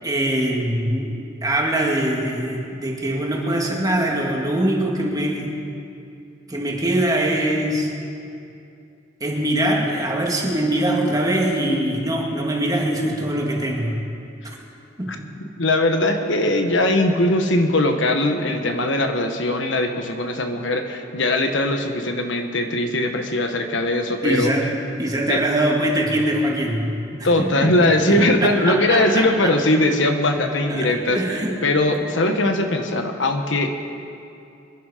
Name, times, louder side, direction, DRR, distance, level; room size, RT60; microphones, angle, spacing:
voice 1, 0.0-1.1 1.4-5.5 6.5-7.9 9.2-14.0 15.0-15.1 24.2-24.7 25.0-26.9 27.2-27.7 28.1-29.5 30.7-31.6 31.9-32.0, right 1 dB, 20° right, -1 dB, 2.1 m, -22 dB
voice 2, 15.6-24.5 25.3-25.4 27.2-31.2 31.6-33.7, left 1 dB, 70° left, 5 dB, 1.3 m, -20 dB
25.5 x 11.0 x 5.0 m, 2.6 s
head